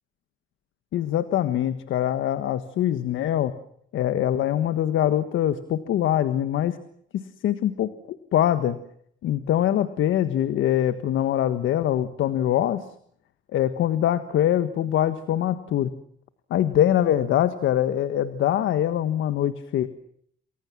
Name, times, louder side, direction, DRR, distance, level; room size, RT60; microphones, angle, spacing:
voice 1, 0.9-3.5 3.9-6.8 7.1-8.8 9.2-12.9 13.5-15.9 16.5-19.9, left 11 dB, 80° left, 12 dB, 1.5 m, -23 dB
28.5 x 21.0 x 7.5 m, 0.68 s
cardioid pair, 90°, 20 cm